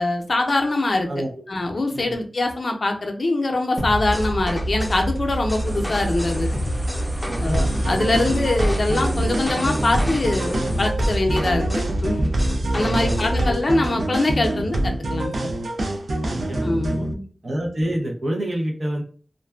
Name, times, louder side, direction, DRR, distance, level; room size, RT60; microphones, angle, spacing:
voice 1, 0.0-1.1 1.5-6.5 7.4-12.3 12.7-15.5 16.6-17.2, left 2 dB, 60° left, 3 dB, 0.5 m, -23 dB
voice 2, 1.1-1.4 1.9-2.2 7.2-7.7 12.8-13.3 16.3-17.1 17.4-19.0, right 1 dB, 60° right, -1 dB, 0.7 m, -27 dB
sound 1, 3.8-13.5, equal, 10° left, 0.5 m, -27 dB
sound 2, 5.6-10.9, equal, 20° right, 1.1 m, -37 dB
sound 3, 7.5-17.1, right 1 dB, 80° right, 0.4 m, -25 dB
2.4 x 2.2 x 2.3 m, 0.41 s
wide cardioid pair, 90°, 0 cm